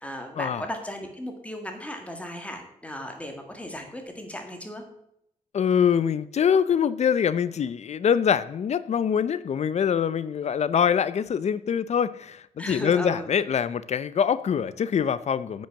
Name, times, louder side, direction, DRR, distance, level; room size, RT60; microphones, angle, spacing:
voice 1, 0.0-4.8 12.6-13.3, left 1 dB, 10° left, 4 dB, 1.9 m, -36 dB
voice 2, 5.5-15.7, left 7 dB, 50° left, 16 dB, 0.6 m, -24 dB
9.9 x 6.3 x 7.0 m, 0.76 s
wide cardioid pair, 150°, 15 cm